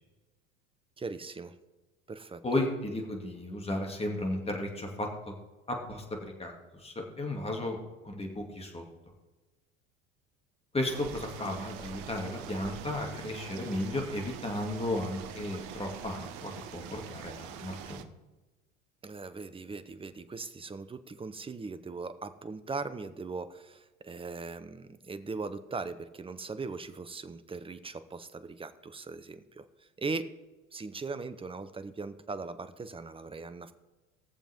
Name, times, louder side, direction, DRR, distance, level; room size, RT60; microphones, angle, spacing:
voice 1, 1.0-1.6 2.1-2.4 19.0-29.6 30.0-30.3 30.7-33.7, right 4 dB, 15° right, 12 dB, 0.8 m, -39 dB
voice 2, 2.4-5.3 5.7-8.8 10.7-18.1, left 1 dB, 15° left, 1 dB, 2.4 m, -34 dB
sound 1, 10.9-18.0, right 9 dB, 60° right, 0.9 m, -44 dB
20.0 x 7.1 x 3.6 m, 1.2 s
hypercardioid pair, 75°, 39 cm